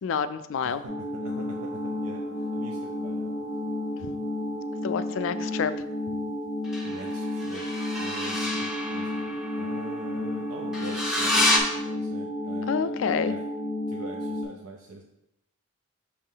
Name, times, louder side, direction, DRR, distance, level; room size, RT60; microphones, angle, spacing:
voice 1, 0.0-0.8 4.0-4.1 4.8-5.7 12.7-13.3, left 6 dB, 60° left, 12 dB, 0.3 m, -28 dB
voice 2, 0.6-3.7 6.8-13.4 13.9-15.0, right 2 dB, 85° right, 1 dB, 0.6 m, -44 dB
sound 1, 0.8-14.4, left 1 dB, 30° right, 1.7 m, -32 dB
sound 2, 1.3-4.3 6.6-11.6, left 1 dB, ahead, 0.6 m, -31 dB
5.5 x 3.1 x 5.5 m, 0.86 s
head